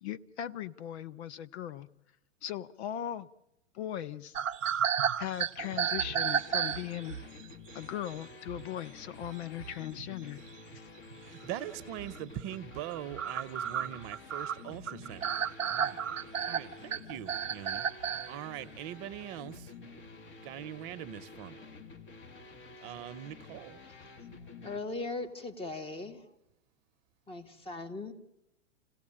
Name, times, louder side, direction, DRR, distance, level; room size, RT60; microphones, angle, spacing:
voice 1, 0.0-1.9 2.4-3.3 3.7-4.4 5.2-7.2 7.7-10.4 10.7-10.9, left 11 dB, 60° left, 16 dB, 0.8 m, -39 dB
sound 1, 4.3-7.3 8.1-8.2 8.5-8.7 9.2-9.3 9.6-10.1 10.7-10.8 11.1-11.2 12.0-12.1 12.5-18.3, right 8 dB, 85° right, 0.9 m, -32 dB
sound 2, 5.6-24.8, left 3 dB, 30° left, 1.9 m, -50 dB
voice 2, 11.2-15.3 15.7-16.0 16.5-19.7 20.4-21.6 22.8-23.8, right 12 dB, 40° right, 12 dB, 0.9 m, -42 dB
voice 3, 24.6-26.2 27.3-28.1, left 3 dB, 15° left, 7 dB, 1.6 m, -38 dB
27.0 x 17.0 x 8.7 m, 0.93 s
hypercardioid pair, 120°, 38 cm